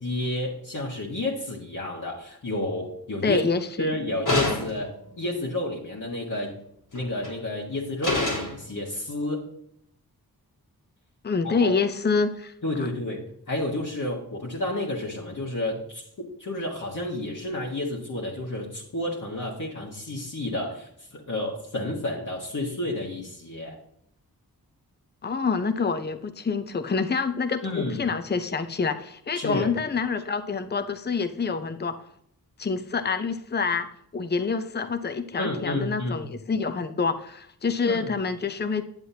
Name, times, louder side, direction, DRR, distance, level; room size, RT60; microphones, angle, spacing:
voice 1, 0.0-3.4 3.8-6.6 6.9-9.5 11.4-11.8 12.6-23.8 27.6-28.0 29.3-29.7 35.4-36.2 37.9-38.1, left 1 dB, 50° left, -4 dB, 1.6 m, -31 dB
voice 2, 3.2-3.6 11.2-12.5 25.2-31.9 32.6-33.9 34.1-38.8, left 5 dB, 25° left, 9 dB, 0.7 m, -27 dB
sound 1, 4.3-4.9 6.9-7.3 8.0-8.6, left 2 dB, 80° left, 3.6 m, -26 dB
9.7 x 7.6 x 2.8 m, 0.67 s
cardioid pair, 45°, 38 cm